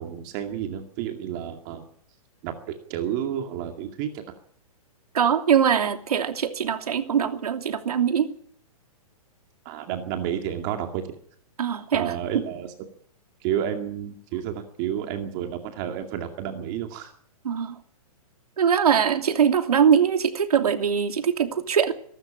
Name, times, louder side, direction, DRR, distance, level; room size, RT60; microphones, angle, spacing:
voice 1, 0.0-1.8 2.4-4.3 9.6-11.1 11.9-12.7 13.4-17.1, right 10 dB, 30° right, 5 dB, 2.2 m, -31 dB
voice 2, 5.1-8.3 11.6-12.1 17.4-17.8 18.6-21.9, right 8 dB, 85° right, 6 dB, 2.9 m, -22 dB
23.5 x 12.5 x 8.8 m, 0.63 s
hypercardioid pair, 160°, 19 cm